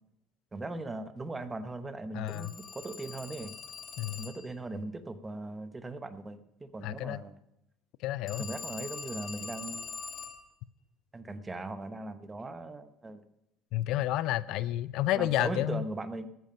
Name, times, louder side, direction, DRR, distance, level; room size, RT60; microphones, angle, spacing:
voice 1, 0.5-3.5 4.2-7.4 8.4-9.9 11.1-13.3 15.1-16.3, right 2 dB, 15° right, 12 dB, 1.0 m, -39 dB
voice 2, 2.1-2.5 4.0-4.3 6.8-7.2 8.0-8.4 13.7-15.8, left 14 dB, 65° left, 18 dB, 0.5 m, -30 dB
Telephone, 2.3-4.6 8.3-10.5, left 6 dB, 40° left, 1.8 m, -43 dB
13.0 x 9.2 x 5.7 m, 0.84 s
cardioid pair, 130°, 0 cm